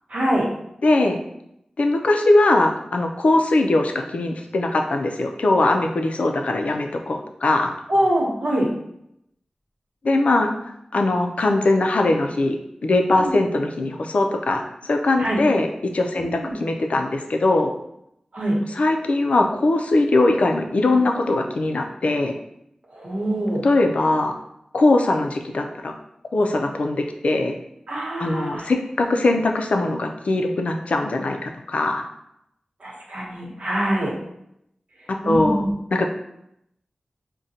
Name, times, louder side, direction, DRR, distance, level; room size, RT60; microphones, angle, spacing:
voice 1, 0.1-0.5 7.9-8.7 13.1-13.3 15.2-15.4 16.1-16.5 18.3-18.6 22.9-23.6 27.9-28.7 32.8-34.1 35.2-35.7, right 1 dB, 80° right, -3 dB, 1.0 m, -24 dB
voice 2, 0.8-1.2 1.8-7.7 10.0-12.6 12.8-15.7 15.9-17.7 18.7-22.3 23.6-24.3 24.7-25.9 26.3-27.6 28.2-32.0 35.1-35.6 35.9-36.1, left 2 dB, 75° left, 4 dB, 0.4 m, -21 dB
4.9 x 2.2 x 2.7 m, 0.79 s
wide cardioid pair, 60°, 2 cm